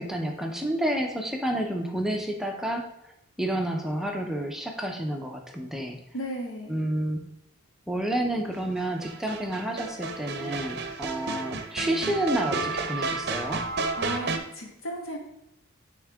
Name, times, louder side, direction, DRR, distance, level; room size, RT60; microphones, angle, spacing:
voice 1, 0.0-6.0 6.7-7.2 7.9-13.6, right 1 dB, ahead, 2 dB, 0.5 m, -30 dB
voice 2, 6.1-6.8 14.0-15.2, right 1 dB, 85° left, 0 dB, 1.6 m, -34 dB
sound 1, 8.8-14.4, right 3 dB, 50° right, 0.6 m, -32 dB
9.4 x 3.6 x 3.5 m, 0.81 s
head